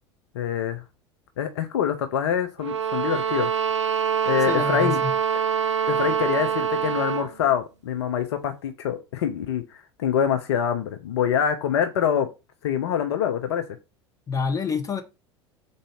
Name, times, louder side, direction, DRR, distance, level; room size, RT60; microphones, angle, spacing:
voice 1, 0.3-0.8 1.4-3.5 4.3-5.0 5.9-9.6 10.0-12.3 12.6-13.6, left 8 dB, 65° left, 0.5 m, -25 dB
sound 1, 2.6-7.3, right 7 dB, 80° right, 0.4 m, -25 dB
voice 2, 4.5-5.1 14.3-15.0, left 5 dB, 20° left, 0.8 m, -27 dB
3.8 x 2.7 x 4.8 m
figure-of-eight pair, 75°, 15 cm